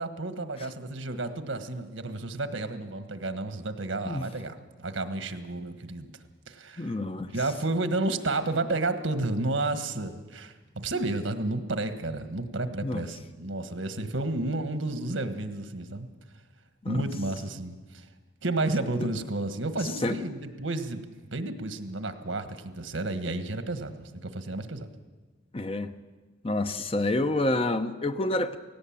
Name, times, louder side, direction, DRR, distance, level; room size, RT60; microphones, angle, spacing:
voice 1, 0.0-6.1 6.5-7.0 7.3-16.1 16.9-18.1 18.4-24.9, right 2 dB, 75° right, 1.5 m, -31 dB
voice 2, 6.8-7.3 12.8-13.0 16.8-17.0 20.0-20.1 25.5-25.9 26.4-28.6, left 2 dB, 30° left, 0.8 m, -28 dB
17.5 x 17.0 x 8.8 m
head